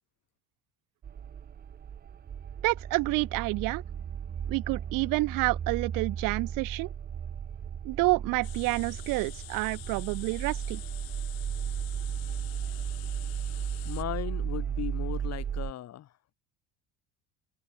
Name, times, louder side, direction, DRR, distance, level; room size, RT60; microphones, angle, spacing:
sound 1, 1.0-15.7, right 8 dB, 25° right, 1.1 m, -35 dB
voice 1, 2.6-3.8 4.5-6.9 7.8-10.8, right 24 dB, 60° right, 0.5 m, -29 dB
sound 2, 8.4-14.0, left 21 dB, 65° left, 4.5 m, -47 dB
voice 2, 13.8-16.1, left 12 dB, 40° left, 2.6 m, -37 dB
open air
cardioid pair, 150°, 38 cm